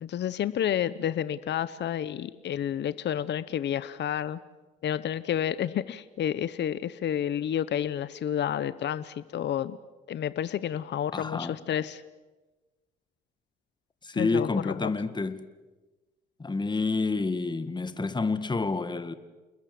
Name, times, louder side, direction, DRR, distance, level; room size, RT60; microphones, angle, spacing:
voice 1, 0.0-4.4 4.8-9.8 10.1-12.0 14.1-14.9, left 10 dB, 60° left, 0.9 m, -30 dB
voice 2, 11.1-11.6 14.0-15.4 16.4-19.1, left 3 dB, 20° left, 1.8 m, -29 dB
29.0 x 21.0 x 7.8 m
cardioid pair, 90°, 20 cm